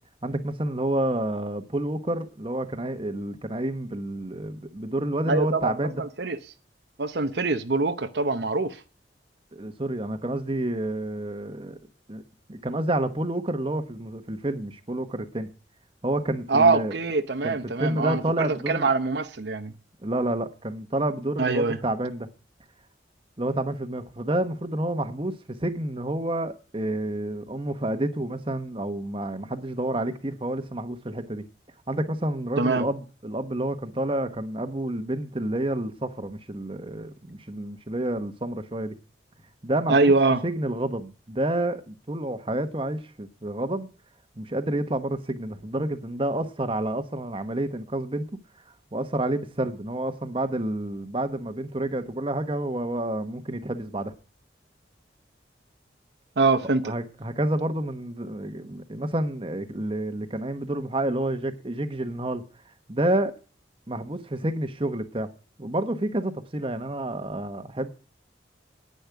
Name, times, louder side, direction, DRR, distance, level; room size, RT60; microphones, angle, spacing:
voice 1, 0.2-6.0 9.5-11.8 12.1-12.2 12.5-15.5 16.0-17.0 17.4-18.9 20.0-22.3 23.4-25.3 25.6-31.4 31.9-38.9 39.6-40.1 40.4-43.9 44.4-48.2 48.9-54.1 56.8-62.4 62.9-63.3 63.9-65.3 65.6-67.9, right 1 dB, 30° right, 1.1 m, -29 dB
voice 2, 5.3-5.7 6.0-6.4 7.0-8.8 16.5-19.7 21.4-21.8 32.6-32.9 39.9-40.4 56.4-56.9, right 3 dB, 65° right, 0.8 m, -23 dB
10.5 x 9.9 x 4.7 m
head